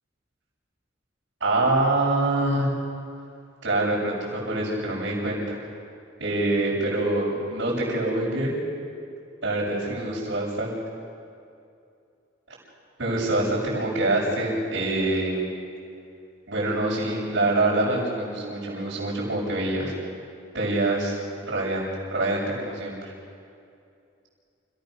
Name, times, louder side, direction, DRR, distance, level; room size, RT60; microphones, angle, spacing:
voice 1, 1.4-2.7 3.6-5.6 6.2-8.5 9.4-10.8 13.0-15.4 16.5-19.9 20.5-21.2 21.4-23.1, right 2 dB, 75° right, -11 dB, 7.2 m, -25 dB
29.0 x 17.0 x 6.8 m, 2.5 s
head